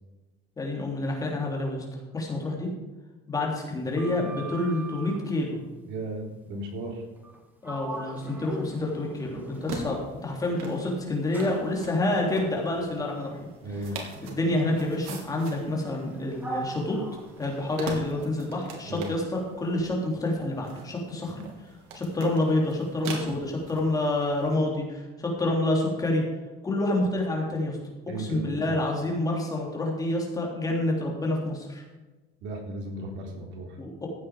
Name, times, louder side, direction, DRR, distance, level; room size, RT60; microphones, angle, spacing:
voice 1, 0.6-1.8 2.1-2.7 3.3-5.6 7.6-13.5 14.2-17.0 17.4-21.4 21.9-26.2 26.6-27.8 28.2-31.8 33.8-34.1, left 2 dB, 15° left, -1 dB, 3.5 m, -28 dB
Sliding door, 3.7-5.3 7.2-7.4 7.6-10.1 10.7-18.2, right 2 dB, 10° right, 2.0 m, -41 dB
voice 2, 5.9-7.0 13.6-14.0 18.8-19.1 28.1-28.8 32.4-33.8, right 2 dB, 65° right, 1 dB, 3.8 m, -35 dB
sound 1, 9.5-24.5, right 4 dB, 90° right, 3.2 m, -42 dB
15.5 x 8.8 x 5.2 m, 1.2 s
cardioid pair, 160°, 21 cm